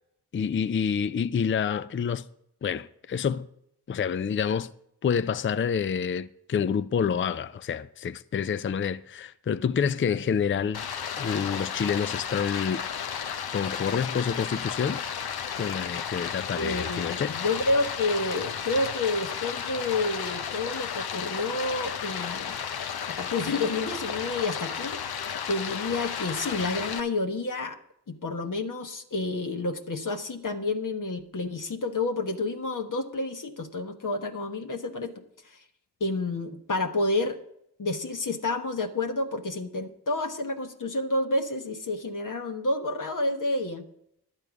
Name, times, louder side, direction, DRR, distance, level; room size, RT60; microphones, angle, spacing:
voice 1, 0.3-2.2 2.6-3.5 3.9-4.7 5.0-10.8 11.2-12.8 13.5-15.0 15.6-17.4, left 7 dB, 30° left, 0.5 m, -28 dB
Stream, 10.7-27.0, left 7 dB, 65° left, 0.8 m, -33 dB
voice 2, 16.5-22.6 23.1-25.0 25.5-27.8 28.1-35.6 36.0-37.4 37.8-43.8, left 2 dB, 50° left, 1.2 m, -29 dB
11.0 x 8.9 x 5.0 m
cardioid pair, 40°, 41 cm